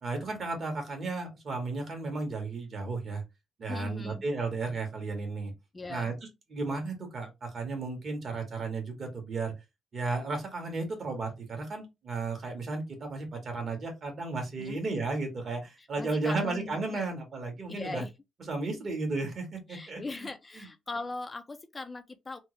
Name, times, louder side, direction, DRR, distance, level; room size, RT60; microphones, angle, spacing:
voice 1, 0.0-3.2 3.6-5.5 5.9-6.1 6.5-9.5 9.9-18.0 18.5-20.3 20.5-20.7, right 3 dB, 45° right, 1.4 m, -34 dB
voice 2, 3.7-4.2 5.7-6.1 14.6-14.8 16.0-17.0 17.7-18.1 19.7-22.4, left 3 dB, 25° left, 0.4 m, -39 dB
3.4 x 2.0 x 3.1 m
cardioid pair, 90°, 0 cm